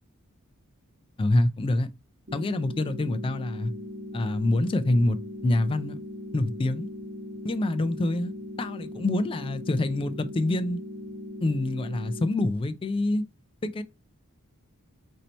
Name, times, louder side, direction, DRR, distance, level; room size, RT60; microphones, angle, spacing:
voice 1, 1.2-1.9 2.3-3.7 4.1-6.0 6.3-6.9 7.4-8.3 8.6-10.8 11.4-13.3 13.6-13.8, left 2 dB, 25° left, 0.3 m, -26 dB
sound 1, 2.3-12.3, left 1 dB, 45° right, 1.0 m, -39 dB
4.2 x 2.7 x 4.2 m
head